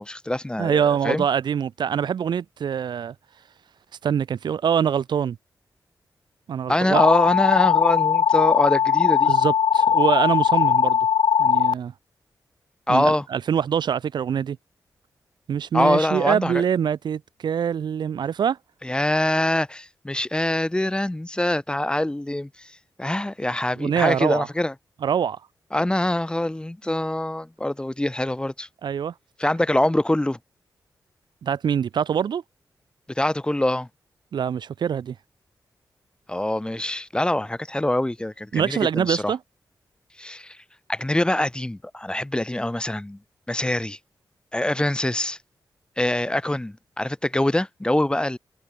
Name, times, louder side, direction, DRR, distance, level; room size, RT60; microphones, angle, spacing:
voice 1, 0.0-1.2 6.7-9.3 12.9-13.2 15.7-16.6 18.8-22.7 23.0-24.7 25.7-28.7 29.4-30.4 33.2-33.9 36.3-39.3 40.2-40.6 40.9-43.2 43.5-44.0 44.5-45.4 46.0-48.4, left 1 dB, 10° left, 4.3 m, -24 dB
voice 2, 0.6-3.1 4.0-5.4 6.5-7.0 9.2-11.0 11.4-11.9 12.9-14.6 15.5-18.6 23.8-24.5 25.0-25.4 28.8-29.1 31.4-32.4 34.3-35.2 38.5-39.4, right 8 dB, 90° right, 3.5 m, -24 dB
sound 1, 7.0-11.7, left 8 dB, 85° left, 1.0 m, -19 dB
wide cardioid pair, 90°, 7 cm